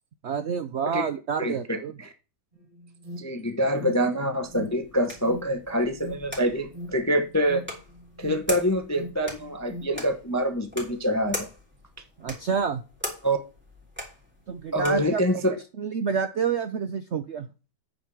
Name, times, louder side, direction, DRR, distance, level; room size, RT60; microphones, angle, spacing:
voice 1, 0.2-1.9 12.2-12.8 14.5-15.2 15.8-17.5, right 6 dB, 65° right, 0.7 m, -28 dB
Alarm, 2.5-10.0, equal, 25° right, 2.1 m, -42 dB
voice 2, 3.2-7.6 8.2-11.5 13.2-13.4 14.7-15.6, equal, 20° left, 0.5 m, -25 dB
sound 1, 4.4-15.2, left 1 dB, 5° right, 3.3 m, -41 dB
8.8 x 5.2 x 6.2 m
omnidirectional pair, 1.9 m